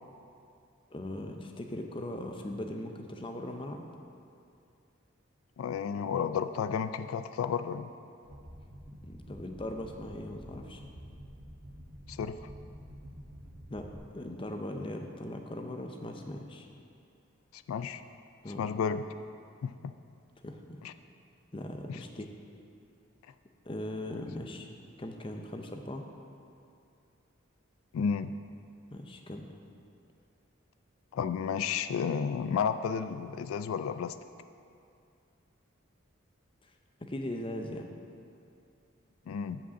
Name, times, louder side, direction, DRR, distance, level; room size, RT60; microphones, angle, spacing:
voice 1, 0.9-3.9 9.0-10.8 13.7-13.9 14.1-16.7 18.4-18.6 20.4-20.8 21.5-22.3 23.6-24.7 25.0-26.0 28.9-29.5 36.6-36.7 37.0-37.9, left 1 dB, 25° left, 4 dB, 0.6 m, -39 dB
voice 2, 5.6-7.9 12.1-12.4 17.5-18.0 18.6-19.0 19.6-19.9 20.8-20.9 21.9-22.0 27.9-28.3 31.1-34.2 39.3-39.6, left 6 dB, 90° left, 11 dB, 0.3 m, -32 dB
sound 1, 8.2-14.0, equal, 65° right, 1.4 m, -49 dB
8.3 x 5.2 x 7.0 m, 2.5 s
head